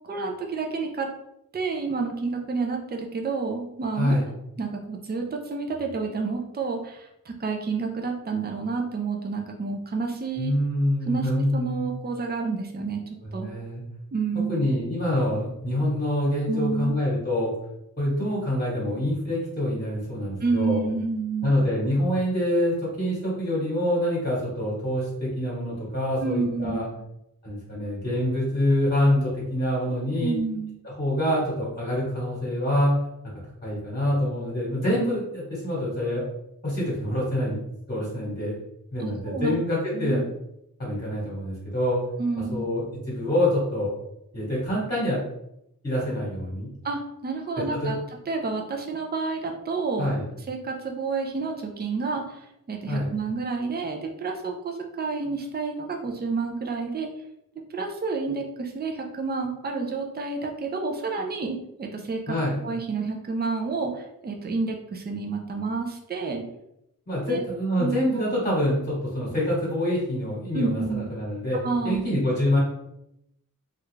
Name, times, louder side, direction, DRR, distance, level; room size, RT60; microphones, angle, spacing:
voice 1, 0.0-1.1 1.5-4.1 4.6-10.5 11.1-13.0 13.3-13.5 14.1-14.7 16.5-17.0 20.4-21.6 26.2-26.8 30.2-30.8 39.0-39.5 39.9-40.2 42.2-42.7 46.8-48.0 48.3-50.1 50.5-57.1 57.7-62.4 62.6-66.4 67.3-67.4 67.8-67.9 68.2-68.3 70.5-71.1 71.6-72.0, right 4 dB, 30° right, 2 dB, 0.5 m, -29 dB
voice 2, 3.9-4.3 10.4-11.9 13.2-13.8 14.5-17.5 18.0-20.9 21.4-26.9 27.4-30.4 30.8-33.1 33.6-36.3 36.6-37.6 37.9-38.6 38.9-40.3 40.8-42.0 42.5-43.9 44.3-45.2 45.8-46.7 47.6-48.0 50.0-50.3 52.9-53.1 62.3-62.6 67.1-71.6 71.8-72.6, left 1 dB, 25° left, -7 dB, 1.2 m, -26 dB
3.3 x 2.4 x 3.1 m, 0.83 s
wide cardioid pair, 150°, 35 cm